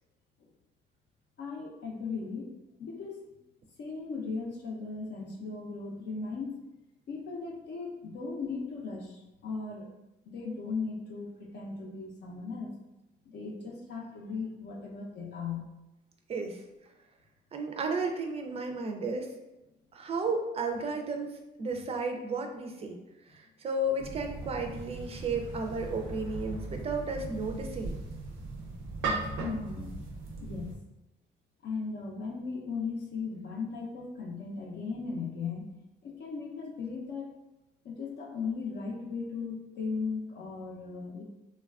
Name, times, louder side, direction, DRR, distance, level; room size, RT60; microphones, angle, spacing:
voice 1, 1.4-3.4 3.8-6.6 7.1-9.9 10.3-12.7 13.3-15.6 29.4-29.9 30.4-30.7 31.6-35.7 36.0-37.3 37.8-41.2, left 4 dB, 60° left, -1 dB, 0.5 m, -37 dB
voice 2, 16.3-16.6 17.5-19.3 19.9-23.0 23.3-28.0, right 2 dB, 30° right, 3 dB, 0.4 m, -33 dB
sound 1, 24.0-30.8, right 3 dB, 90° right, 0.6 m, -38 dB
3.1 x 2.2 x 2.3 m, 0.99 s
cardioid pair, 90°, 20 cm